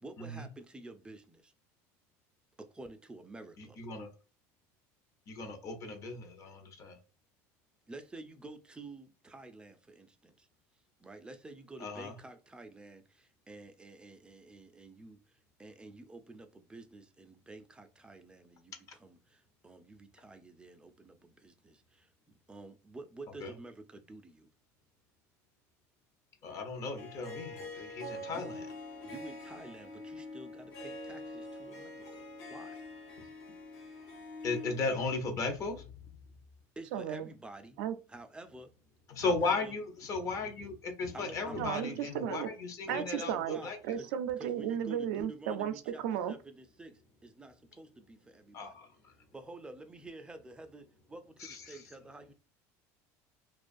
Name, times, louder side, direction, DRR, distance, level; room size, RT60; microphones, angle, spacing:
voice 1, 0.0-1.5 2.6-3.8 7.9-10.5 11.0-24.5 28.2-28.5 29.0-32.8 36.8-37.8 38.1-38.7 39.2-39.8 41.1-42.0 42.9-44.1 44.4-46.0 46.3-48.8 49.3-52.3, right 2 dB, 10° right, 0.4 m, -50 dB
voice 2, 3.6-4.1 5.3-7.0 11.8-12.1 23.4-23.5 26.4-28.5 34.4-35.9 39.1-43.8 48.5-49.1 51.4-51.8, left 3 dB, 45° left, 0.7 m, -36 dB
Harp, 27.0-35.0, left 2 dB, 75° left, 0.9 m, -45 dB
voice 3, 36.9-37.3 37.8-37.9 41.6-42.5 42.9-46.4, right 9 dB, 85° right, 0.4 m, -34 dB
2.4 x 2.3 x 2.4 m
supercardioid pair, 110°, 8 cm